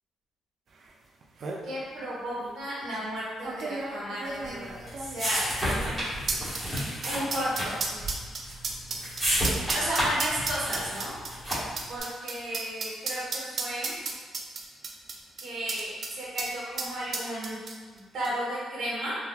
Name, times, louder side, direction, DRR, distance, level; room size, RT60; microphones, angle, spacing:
sound 1, 0.9-1.0 1.2-1.6 2.4-2.5 3.4-16.1 16.4-16.5 16.8-18.0 18.2-18.3, right 4 dB, 40° right, 0.3 m, -34 dB
voice 1, 1.6-5.6 7.0-8.0 9.7-11.1 11.9-13.9 15.4-17.6 18.1-19.1, equal, 70° right, -7 dB, 1.2 m, -33 dB
sound 2, 4.4-11.9, equal, 5° right, 1.2 m, -31 dB
3.7 x 2.8 x 2.2 m, 1.5 s
cardioid pair, 170°, 0 cm